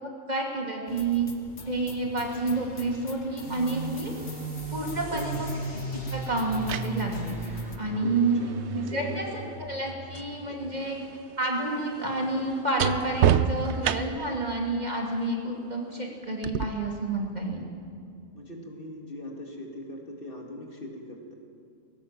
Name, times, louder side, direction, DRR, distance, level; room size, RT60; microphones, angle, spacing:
voice 1, 0.0-1.3 1.7-4.1 4.7-5.5 6.1-8.4 8.7-9.3 9.6-11.0 11.4-17.6, right 2 dB, 30° right, -1 dB, 2.7 m, -29 dB
sound 1, 0.9-7.8, left 3 dB, 60° left, 1.6 m, -44 dB
sound 2, 3.4-10.7, right 2 dB, 5° right, 4.1 m, -37 dB
voice 2, 5.1-5.7 8.0-8.6 8.9-9.6 10.5-10.8 18.3-21.3, left 1 dB, 40° left, 0 dB, 2.7 m, -41 dB
sound 3, 5.1-5.2 6.3-10.4 10.6-14.4 16.4-16.6, right 9 dB, 65° right, 0.9 m, -30 dB
20.0 x 18.0 x 7.6 m, 2.3 s
omnidirectional pair, 1.4 m